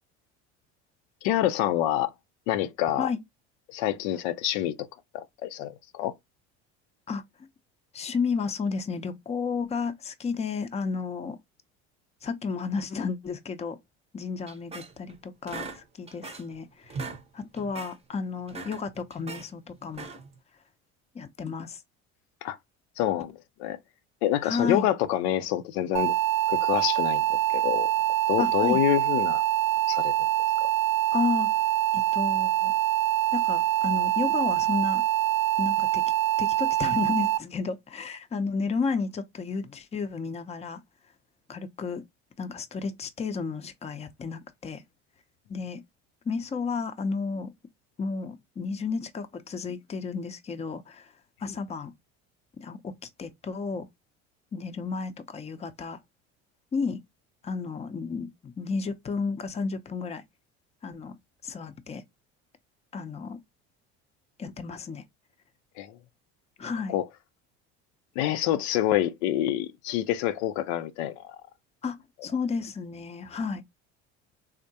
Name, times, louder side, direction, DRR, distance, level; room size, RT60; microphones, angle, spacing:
voice 1, 1.2-2.1 2.5-3.1 3.7-4.9 5.1-6.1 22.4-22.6 23.0-23.3 23.6-23.8 24.2-26.1 26.5-27.9 28.3-29.4 29.9-30.1 30.6-30.7 65.8-65.9 66.9-67.1 68.2-71.4, left 13 dB, 80° left, 0.5 m, -27 dB
voice 2, 7.1-7.5 7.9-11.4 12.2-13.8 14.1-17.0 17.3-20.1 21.1-21.8 24.4-24.9 28.4-28.8 31.1-31.5 31.9-32.7 33.3-35.0 35.6-36.0 36.4-40.8 41.5-42.0 42.4-44.8 45.5-45.8 46.3-47.5 48.0-51.1 51.4-51.9 52.6-53.9 54.5-56.0 56.7-57.0 57.4-60.2 60.8-61.2 61.4-62.0 62.9-63.4 64.4-65.0 66.6-66.9 71.8-73.6, left 5 dB, 20° left, 0.5 m, -32 dB
sound 1, 14.5-15.1 15.5-16.6 16.8-17.2 17.6-18.0 18.4-19.5 19.9-20.4, right 4 dB, 20° right, 0.7 m, -39 dB
sound 2, 25.9-37.4, right 13 dB, 70° right, 0.6 m, -25 dB
3.5 x 2.1 x 2.6 m
supercardioid pair, 85°, 32 cm